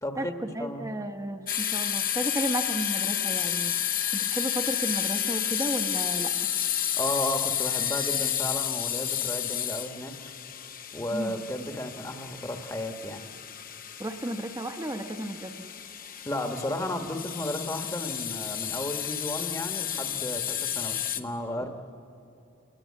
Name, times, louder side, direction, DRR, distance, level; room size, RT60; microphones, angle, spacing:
voice 1, 0.0-0.8 7.0-10.1 10.9-13.2 16.2-21.7, left 1 dB, 15° left, 5 dB, 1.3 m, -34 dB
voice 2, 0.5-6.5 11.1-11.4 14.0-15.7, right 1 dB, 15° right, 5 dB, 1.0 m, -33 dB
sound 1, 1.5-21.2, left 10 dB, 45° left, 1.0 m, -31 dB
29.0 x 21.0 x 8.5 m, 2.7 s
head